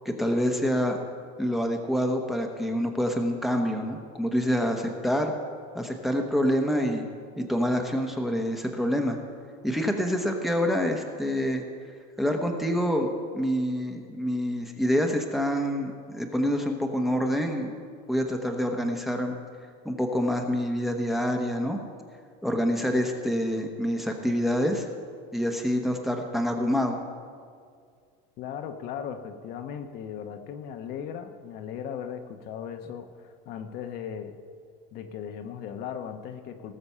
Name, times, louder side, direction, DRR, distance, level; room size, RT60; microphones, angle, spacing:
voice 1, 0.0-1.0 1.4-5.3 5.7-7.1 7.4-9.2 9.6-11.6 12.2-17.7 18.1-19.3 19.8-21.8 22.4-24.8 25.3-27.0, equal, ahead, 2 dB, 1.0 m, -26 dB
voice 2, 28.4-34.4 34.9-36.7, left 8 dB, 50° left, 6 dB, 0.9 m, -37 dB
18.0 x 6.9 x 5.6 m, 2.1 s
cardioid pair, 145°, 20 cm